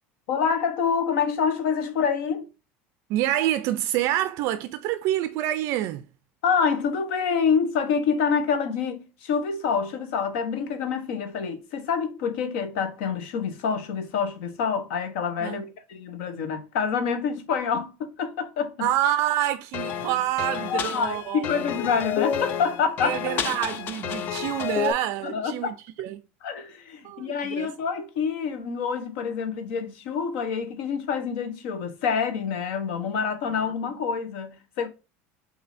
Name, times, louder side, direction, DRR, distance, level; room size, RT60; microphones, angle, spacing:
voice 1, 0.3-2.5 6.4-18.9 20.7-23.2 25.2-25.8 26.4-34.9, left 6 dB, 70° left, 0.9 m, -27 dB
voice 2, 3.1-6.0 15.4-15.6 18.8-21.7 23.0-26.2 27.0-27.7 33.5-33.7, right 13 dB, 50° right, 0.3 m, -27 dB
sound 1, 19.7-24.9, left 8 dB, 30° left, 0.4 m, -30 dB
6.1 x 2.7 x 2.5 m
cardioid pair, 165°, 6 cm